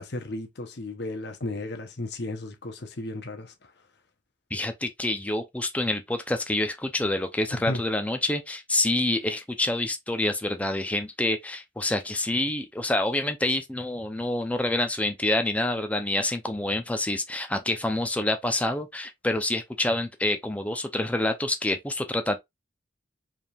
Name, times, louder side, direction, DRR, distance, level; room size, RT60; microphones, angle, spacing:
voice 1, 0.0-3.5 7.5-7.8, left 2 dB, 65° left, 0.9 m, -34 dB
voice 2, 4.5-22.4, left 1 dB, 10° left, 0.6 m, -27 dB
4.5 x 3.5 x 2.4 m
head